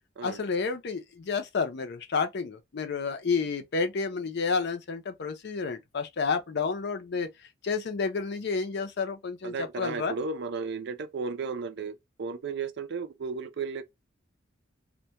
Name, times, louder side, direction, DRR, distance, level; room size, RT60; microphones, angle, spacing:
voice 1, 0.2-7.3 7.6-10.1, left 5 dB, 55° left, 0.5 m, -30 dB
voice 2, 9.4-13.8, right 4 dB, 60° right, 0.4 m, -34 dB
2.2 x 2.2 x 2.7 m
head